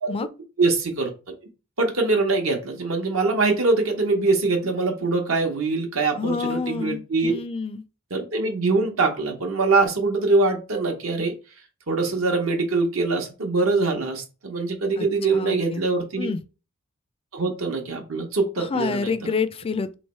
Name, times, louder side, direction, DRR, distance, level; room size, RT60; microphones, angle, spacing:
voice 1, 0.6-1.1 1.8-7.4 8.1-11.3 11.9-16.3 17.3-19.3, right 3 dB, 80° right, 0.9 m, -23 dB
voice 2, 6.2-7.8 15.0-15.1 15.3-15.8 16.2-16.4 18.6-19.9, left 5 dB, 25° left, 0.3 m, -28 dB
3.1 x 3.0 x 4.3 m
head